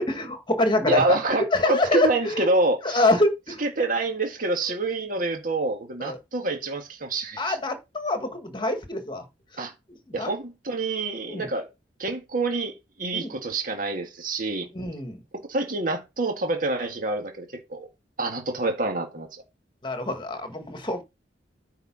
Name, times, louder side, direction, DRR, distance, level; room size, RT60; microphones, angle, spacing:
voice 1, 0.0-1.2 1.5-2.5 2.8-3.6 6.0-6.2 7.4-9.2 10.2-10.3 11.3-11.5 13.1-13.3 14.7-15.2 19.8-21.0, left 1 dB, 25° left, 1.7 m, -25 dB
voice 2, 0.9-3.1 3.6-7.6 9.6-9.7 10.1-11.7 12.0-14.7 15.5-17.9 18.2-19.3, right 2 dB, 50° right, 1.9 m, -27 dB
9.3 x 4.7 x 6.0 m
head